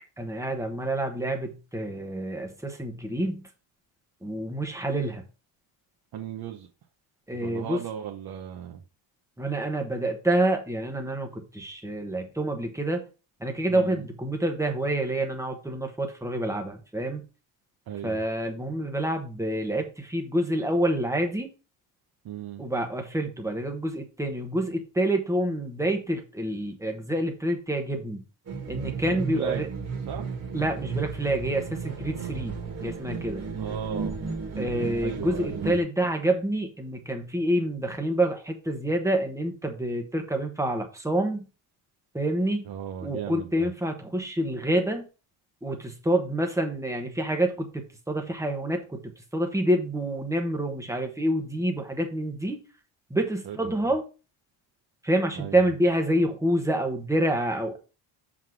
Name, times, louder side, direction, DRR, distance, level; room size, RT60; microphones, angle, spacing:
voice 1, 0.2-3.5 4.2-5.2 7.3-7.8 9.4-13.0 13.4-17.2 18.0-21.5 22.6-28.2 28.7-29.7 30.5-33.4 34.5-41.4 42.1-42.6 43.0-45.0 45.6-49.0 49.3-52.6 53.1-54.0 55.0-57.8, right 1 dB, 5° right, 1.1 m, -27 dB
voice 2, 6.1-6.7 7.3-8.8 13.7-14.0 17.9-18.2 22.2-22.7 29.0-29.7 30.1-30.3 33.6-34.2 35.0-35.7 42.6-43.7 53.5-53.8 55.3-55.6, right 9 dB, 50° right, 0.9 m, -36 dB
sound 1, 28.5-35.8, right 5 dB, 30° right, 1.7 m, -34 dB
7.4 x 4.0 x 4.6 m
cardioid pair, 180°, 49 cm